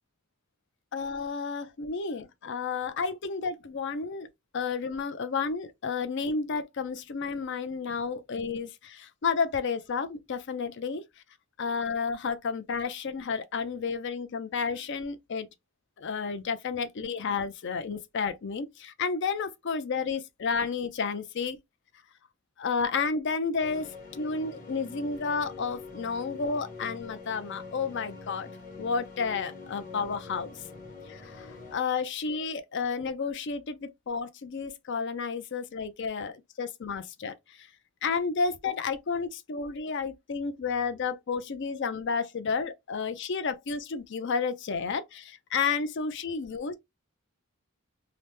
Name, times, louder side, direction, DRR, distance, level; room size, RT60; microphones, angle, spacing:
voice 1, 0.9-4.3 4.5-11.0 11.6-15.5 16.0-21.6 22.6-28.5 28.8-30.5 31.1-37.7 38.0-46.7, left 5 dB, 55° left, 0.5 m, -31 dB
sound 1, 23.6-31.8, left 3 dB, 40° left, 1.2 m, -45 dB
2.9 x 2.1 x 3.2 m
head